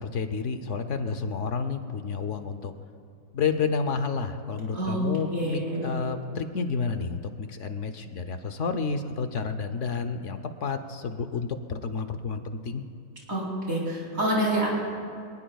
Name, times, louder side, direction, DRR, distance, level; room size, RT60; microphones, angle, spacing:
voice 1, 0.0-2.7 3.3-12.8, left 5 dB, 60° left, 8 dB, 1.0 m, -30 dB
voice 2, 5.3-5.9 13.3-14.7, right 1 dB, 65° right, -4 dB, 4.3 m, -27 dB
24.0 x 19.0 x 2.3 m, 2.3 s
omnidirectional pair, 1.6 m